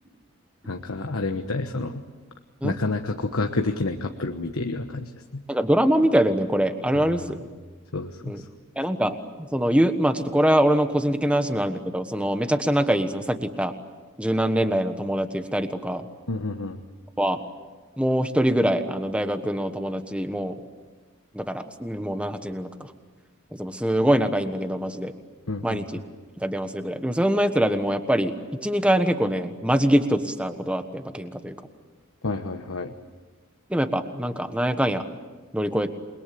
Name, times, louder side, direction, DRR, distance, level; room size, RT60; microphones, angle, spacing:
voice 1, 0.7-2.0 2.6-5.4 6.9-7.0 7.9-8.3 16.3-16.8 25.5-25.8 32.2-32.9, left 2 dB, 80° left, 6 dB, 1.2 m, -29 dB
voice 2, 5.5-7.4 8.2-8.4 8.8-13.7 14.2-16.0 17.2-17.4 18.0-20.6 21.3-22.9 23.5-25.1 25.6-26.0 26.4-28.3 28.6-31.6 33.7-35.0 35.5-35.9, right 1 dB, 5° right, 8 dB, 1.3 m, -24 dB
28.5 x 22.0 x 8.6 m, 1.3 s
head